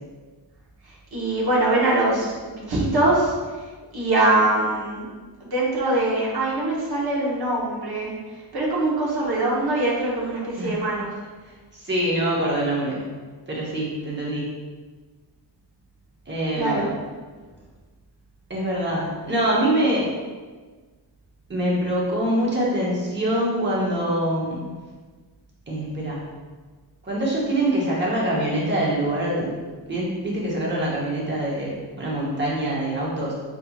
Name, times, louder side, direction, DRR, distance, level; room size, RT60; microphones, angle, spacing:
voice 1, 1.1-3.3 3.9-5.1 5.4-8.1 8.5-11.1 16.5-16.9, right 2 dB, 60° right, -5 dB, 1.1 m, -22 dB
voice 2, 11.7-13.1 13.5-14.5 16.3-16.9 18.5-20.1 21.5-24.7 25.7-26.2 27.0-29.6 29.9-33.3, right 1 dB, 25° right, -5 dB, 0.9 m, -24 dB
5.4 x 2.9 x 2.3 m, 1.4 s
wide cardioid pair, 160°, 43 cm